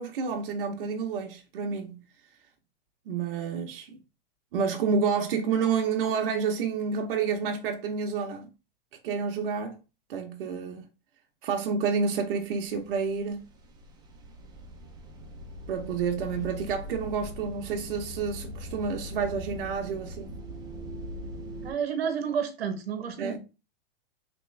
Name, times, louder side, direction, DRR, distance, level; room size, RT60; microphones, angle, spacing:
voice 1, 0.0-2.0 3.1-4.0 4.5-8.5 9.0-9.8 10.1-10.8 11.4-13.4 15.7-20.3 23.2-23.4, right 5 dB, 65° right, 0.7 m, -29 dB
sound 1, 12.6-12.9 13.1-21.7, left 1 dB, 15° right, 0.5 m, -41 dB
voice 2, 21.6-23.4, right 7 dB, 90° right, 1.0 m, -30 dB
3.3 x 3.0 x 3.2 m
hypercardioid pair, 140°, 30 cm